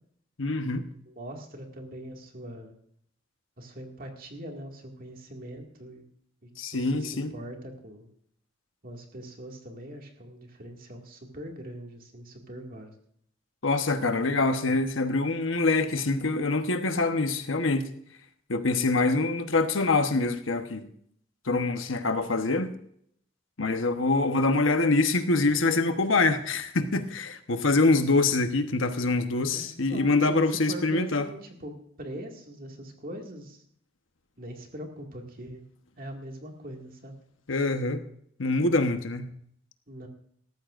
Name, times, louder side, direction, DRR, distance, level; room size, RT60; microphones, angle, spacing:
voice 1, 0.4-0.9 6.6-7.3 13.6-17.8 18.5-20.9 21.4-22.8 23.6-31.3 37.5-38.0 38.4-39.3, left 3 dB, 80° left, 8 dB, 1.1 m, -25 dB
voice 2, 1.1-2.7 3.6-6.0 6.4-8.1 8.8-12.9 29.5-33.6 34.4-35.7 36.0-37.2 39.9-40.1, right 1 dB, 45° right, 2 dB, 2.2 m, -42 dB
18.0 x 14.0 x 2.6 m, 0.68 s
head